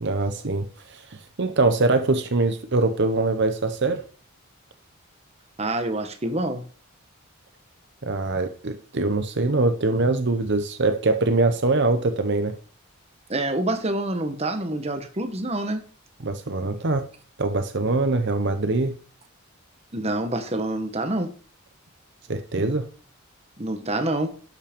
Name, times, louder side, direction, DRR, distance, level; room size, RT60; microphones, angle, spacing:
voice 1, 0.0-1.0 1.4-4.0 8.0-12.5 16.2-17.1 17.4-19.0 22.3-22.9, right 3 dB, 55° right, 8 dB, 0.8 m, -23 dB
voice 2, 5.6-6.6 13.3-15.8 19.9-21.3 23.6-24.3, right 1 dB, 30° right, 7 dB, 1.2 m, -27 dB
12.0 x 5.6 x 5.2 m, 0.44 s
head